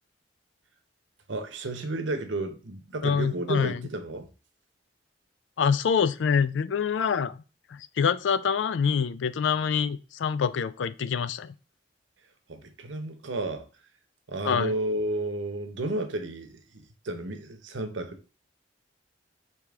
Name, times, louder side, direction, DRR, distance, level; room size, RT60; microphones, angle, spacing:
voice 1, 1.3-4.3 12.5-13.7 14.3-18.3, right 2 dB, 90° right, 0.9 m, -32 dB
voice 2, 3.0-3.8 5.6-7.3 7.7-11.5 14.4-14.7, left 6 dB, 80° left, 0.4 m, -26 dB
4.9 x 2.9 x 3.5 m
head